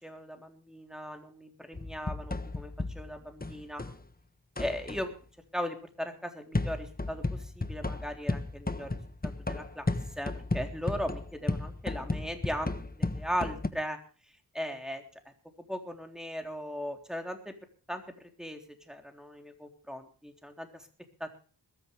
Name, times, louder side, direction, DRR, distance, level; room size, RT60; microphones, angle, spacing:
voice 1, 0.0-3.8 4.6-5.1 5.5-8.9 9.2-9.9 10.2-14.0 14.5-15.3 15.7-17.5 17.9-18.6 18.9-20.9 21.2-21.3, equal, ahead, 4 dB, 3.6 m, -38 dB
sound 1, 1.7-4.0 4.6-5.1 6.5-13.7, left 2 dB, 20° left, 1.3 m, -34 dB
21.5 x 13.5 x 3.4 m, 0.38 s
wide cardioid pair, 65°, 41 cm